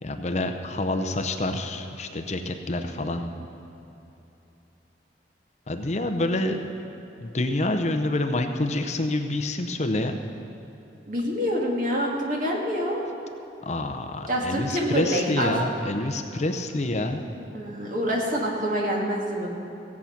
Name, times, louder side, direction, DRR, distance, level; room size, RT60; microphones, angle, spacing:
voice 1, 0.0-3.3 5.7-6.7 7.2-10.2 13.6-17.2, left 2 dB, 40° left, 6 dB, 0.7 m, -27 dB
voice 2, 11.1-13.0 14.3-15.5 17.5-19.5, equal, 45° right, -2 dB, 2.1 m, -26 dB
16.5 x 8.5 x 5.9 m, 3.0 s
head